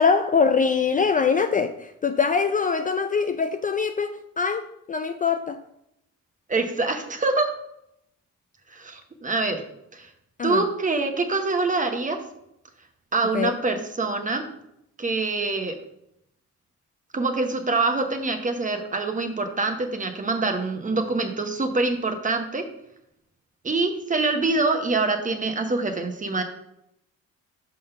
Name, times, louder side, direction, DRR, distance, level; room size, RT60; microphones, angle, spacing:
voice 1, 0.0-4.6 4.9-5.6 10.4-10.6 13.3-13.5, left 5 dB, 30° left, 8 dB, 0.3 m, -23 dB
voice 2, 6.5-7.5 8.7-9.6 9.9-10.1 10.4-12.2 13.1-14.4 15.0-15.7 17.1-22.6 23.6-26.4, right 3 dB, 25° right, 6 dB, 1.0 m, -25 dB
5.4 x 3.9 x 5.4 m, 0.80 s
cardioid pair, 90°, 30 cm